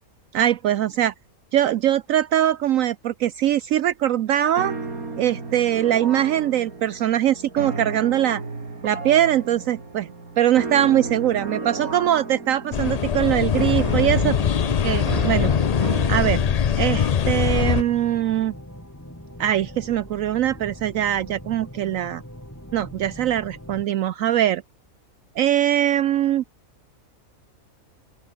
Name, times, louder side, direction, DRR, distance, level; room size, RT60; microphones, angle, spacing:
voice 1, 0.3-1.1 1.5-4.7 5.2-8.4 8.8-14.3 14.8-15.5 16.1-16.4 16.8-18.5 19.4-22.2 22.7-24.6 25.4-26.4, right 11 dB, 70° right, 1.0 m, -22 dB
sound 1, 4.6-16.6, right 3 dB, 85° right, 4.0 m, -33 dB
sound 2, 12.7-17.8, left 8 dB, 75° left, 0.3 m, -22 dB
sound 3, 15.8-23.9, equal, 10° left, 6.2 m, -41 dB
open air
omnidirectional pair, 1.5 m